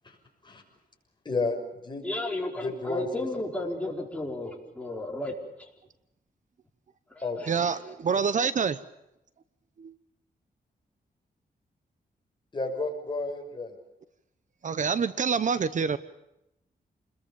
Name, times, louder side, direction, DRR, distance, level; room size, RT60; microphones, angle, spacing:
voice 1, 1.2-1.6 1.8-2.0 2.6-3.3 7.2-7.4 8.2-8.3 12.5-13.7, left 3 dB, 30° left, 2 dB, 6.3 m, -31 dB
voice 2, 2.0-5.7 7.1-7.7, left 2 dB, 10° left, -1 dB, 4.9 m, -34 dB
voice 3, 7.5-8.8 9.8-9.9 14.6-16.0, right 6 dB, 50° right, 14 dB, 0.9 m, -26 dB
28.5 x 21.5 x 7.1 m, 0.85 s
wide cardioid pair, 135°, 16 cm